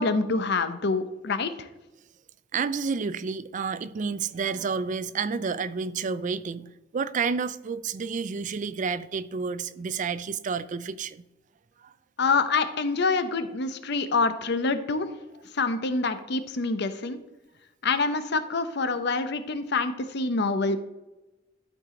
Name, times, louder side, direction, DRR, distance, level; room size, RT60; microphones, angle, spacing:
voice 1, 0.0-1.7 12.2-15.1 15.5-17.2 17.8-20.8, left 3 dB, 60° left, 0.7 m, -26 dB
voice 2, 2.5-11.2 11.8-11.9, right 5 dB, 40° right, 0.4 m, -30 dB
12.0 x 4.7 x 3.8 m
head